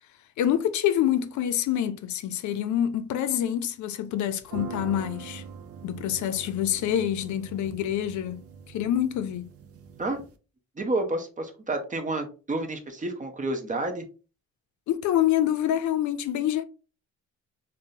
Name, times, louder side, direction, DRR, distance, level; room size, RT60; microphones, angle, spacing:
voice 1, 0.4-5.4 5.8-8.4 8.7-9.5 14.9-16.6, left 11 dB, 70° left, 0.5 m, -26 dB
sound 1, 4.4-10.3, right 6 dB, 50° right, 0.5 m, -43 dB
voice 2, 10.8-14.1, right 2 dB, 25° right, 0.8 m, -30 dB
3.5 x 2.2 x 2.7 m
cardioid pair, 90°, 30 cm